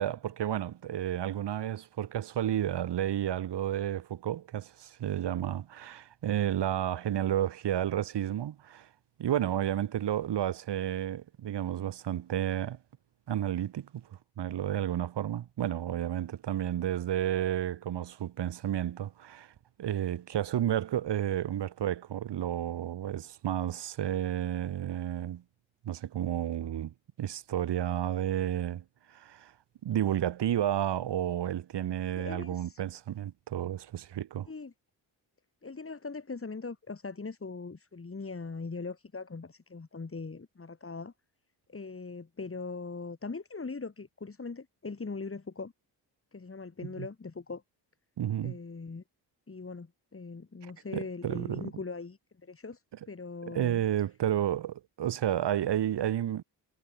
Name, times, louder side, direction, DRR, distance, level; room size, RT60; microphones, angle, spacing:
voice 1, 0.0-8.9 9.2-12.8 13.3-14.1 14.4-19.5 19.8-25.4 25.8-29.5 29.8-34.5 47.0-47.1 48.2-48.6 50.9-51.6 53.5-56.4, right 11 dB, 80° right, 5.9 m, -31 dB
voice 2, 32.2-32.8 34.5-34.7 35.6-41.1 41.7-45.7 46.3-47.6 48.4-49.0 49.5-53.8, left 4 dB, 30° left, 5.4 m, -41 dB
cardioid pair, 65°, 41 cm